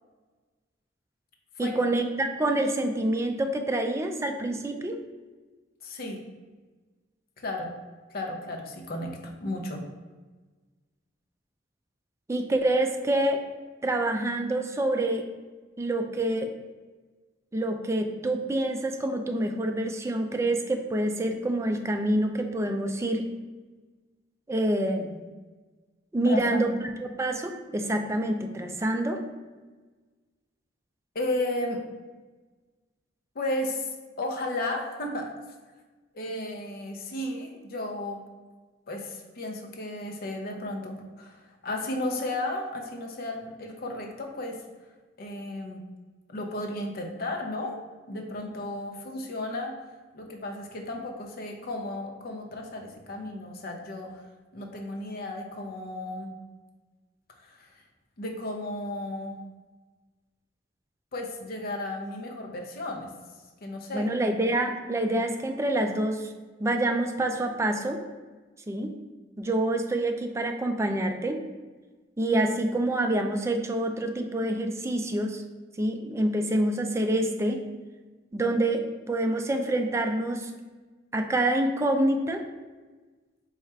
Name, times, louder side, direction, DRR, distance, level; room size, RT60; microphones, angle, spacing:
voice 1, 1.6-5.0 12.3-13.4 13.8-15.2 15.8-16.5 17.5-23.3 24.5-25.2 26.1-26.7 27.0-29.2 63.9-66.3 66.6-68.0 68.7-68.9 69.4-71.4 72.2-75.4 75.8-77.6 78.3-80.5 81.1-82.4, right 1 dB, 15° right, 5 dB, 0.3 m, -27 dB
voice 2, 5.8-6.2 7.4-7.7 8.1-9.8 26.2-26.8 31.1-31.8 33.3-35.3 36.1-38.2 38.9-44.6 45.2-45.8 46.3-47.8 48.1-49.7 50.1-54.2 54.5-56.3 57.4-57.8 58.2-59.4 61.1-63.1 63.6-64.1, left 1 dB, 55° left, 2 dB, 0.6 m, -34 dB
4.2 x 2.4 x 4.5 m, 1.3 s
head